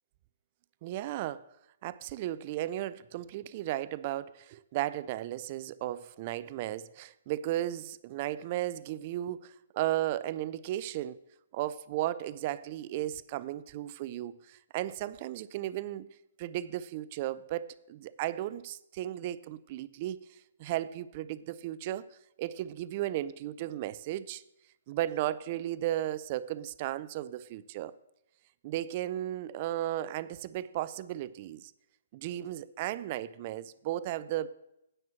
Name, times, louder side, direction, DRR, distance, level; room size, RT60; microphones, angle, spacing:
voice 1, 0.8-1.5 1.8-11.2 11.5-16.1 16.4-24.4 24.9-28.0 28.6-31.7 32.1-34.5, right 13 dB, 40° right, 18 dB, 0.4 m, -35 dB
9.7 x 4.4 x 7.3 m, 0.87 s
hypercardioid pair, 135°, 0 cm